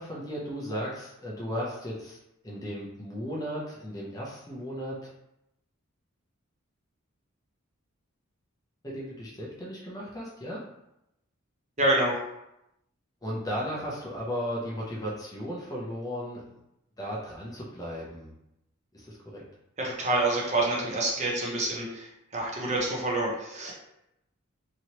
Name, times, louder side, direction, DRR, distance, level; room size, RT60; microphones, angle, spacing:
voice 1, 0.0-2.2 2.4-5.1 8.8-10.6 13.2-16.4 17.0-18.3 19.1-19.4, equal, 15° left, -4 dB, 0.6 m, -35 dB
voice 2, 11.8-12.2 19.8-23.7, right 2 dB, 35° right, -2 dB, 0.7 m, -27 dB
3.0 x 2.8 x 2.9 m, 0.85 s
head